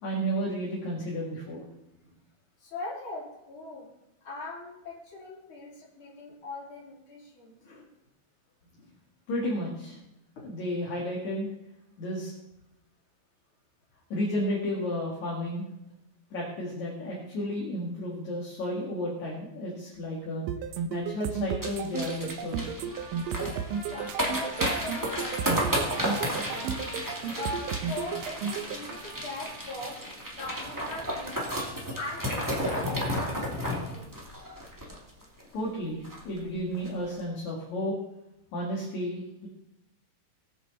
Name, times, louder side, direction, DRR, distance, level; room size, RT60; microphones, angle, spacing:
voice 1, 0.0-1.6 9.3-10.0 10.4-11.5 12.0-12.3 14.1-15.6 16.3-20.5 20.9-22.7 35.5-38.0 38.5-39.5, equal, 50° left, -3 dB, 2.9 m, -32 dB
voice 2, 2.6-3.9 4.2-7.9 8.7-8.9 10.4-10.5 23.9-26.8 27.4-31.5 31.7-34.1, left 2 dB, 30° left, -4 dB, 3.8 m, -41 dB
sound 1, 20.5-28.7, right 7 dB, 90° right, 1.9 m, -33 dB
sound 2, 21.6-35.4 35.7-35.8 36.0-36.4 36.7-36.9, equal, 20° right, 0.5 m, -33 dB
Trumpet, 22.9-30.0, right 2 dB, 45° right, 3.9 m, -46 dB
20.0 x 7.4 x 4.1 m, 0.89 s
omnidirectional pair, 4.8 m